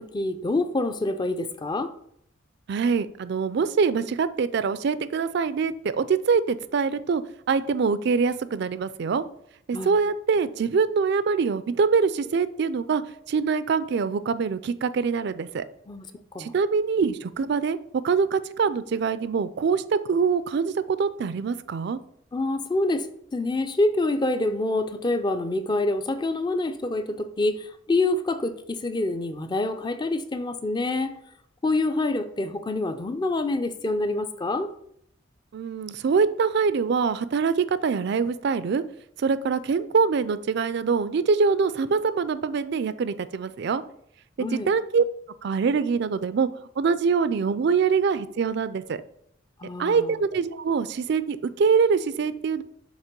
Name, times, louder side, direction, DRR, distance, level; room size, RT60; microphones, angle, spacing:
voice 1, 0.0-1.9 9.7-10.0 15.9-16.1 16.3-16.5 22.3-23.1 23.3-31.1 31.6-34.7 44.4-44.7 49.6-50.2, left 2 dB, 20° left, 0.4 m, -26 dB
voice 2, 2.7-7.2 7.5-9.2 9.7-13.0 13.3-15.6 16.4-17.8 18.0-22.0 35.5-38.8 39.2-43.8 44.4-45.0 45.4-46.5 46.8-49.0 49.8-52.6, right 5 dB, 55° right, 0.3 m, -24 dB
7.3 x 2.9 x 5.2 m
head